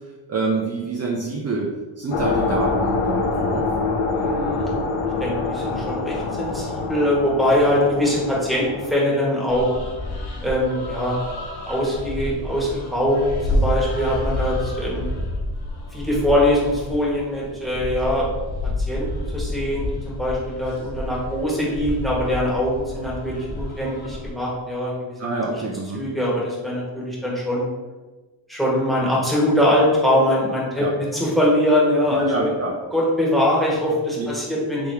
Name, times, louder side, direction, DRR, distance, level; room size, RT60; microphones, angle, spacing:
voice 1, 0.3-1.7 2.0-3.6 25.2-26.0 30.8-30.9 32.1-32.7 34.2-34.3, right 3 dB, 35° right, -3 dB, 0.6 m, -26 dB
sound 1, 2.1-8.9, left 3 dB, 80° left, 0.7 m, -25 dB
voice 2, 4.1-4.7 5.2-9.7 10.4-11.2 11.6-15.0 15.9-18.3 18.9-25.2 25.5-25.6 25.9-27.6 28.5-30.8 31.1-32.5 32.9-34.9, left 1 dB, ahead, -5 dB, 1.3 m, -22 dB
sound 2, 9.5-24.3, left 1 dB, 55° left, 0.9 m, -29 dB
3.4 x 3.1 x 3.4 m, 1.2 s
cardioid pair, 95°, 47 cm